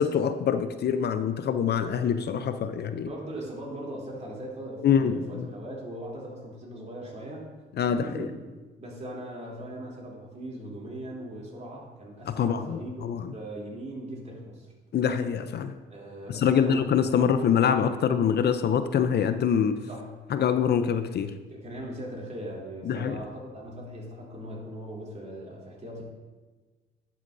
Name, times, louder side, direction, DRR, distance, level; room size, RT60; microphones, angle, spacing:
voice 1, 0.0-3.1 4.8-5.5 7.8-8.3 12.3-13.3 14.9-15.7 16.3-19.8 20.3-21.3 22.9-23.2, left 7 dB, 55° left, 9 dB, 0.5 m, -25 dB
voice 2, 3.0-7.5 8.0-8.3 8.8-14.7 15.9-16.8 19.9-20.1 21.5-26.0, right 1 dB, 35° right, -3 dB, 3.1 m, -39 dB
11.0 x 8.5 x 2.6 m, 1.3 s
cardioid pair, 90°, 20 cm